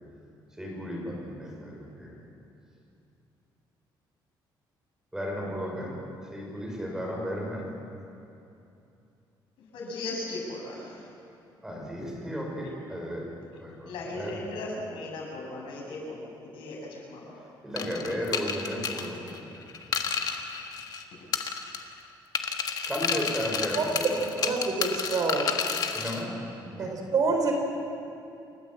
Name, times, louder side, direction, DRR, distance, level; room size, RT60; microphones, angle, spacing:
voice 1, 0.6-2.1 5.1-5.9 6.3-7.6 11.6-13.2 13.6-14.4 17.6-20.0 22.9-24.4 25.9-26.3 26.6-26.9, equal, 5° right, -2 dB, 5.8 m, -34 dB
voice 2, 9.7-11.1 13.8-17.4, left 2 dB, 85° left, -2 dB, 7.3 m, -37 dB
sound 1, 17.8-21.0 21.3-22.0 22.3-26.2, left 6 dB, 50° left, 1.6 m, -31 dB
voice 3, 23.7-25.5 26.8-27.5, right 4 dB, 45° right, 3 dB, 3.8 m, -27 dB
29.0 x 14.0 x 7.7 m, 2.7 s
cardioid pair, 145°, 8 cm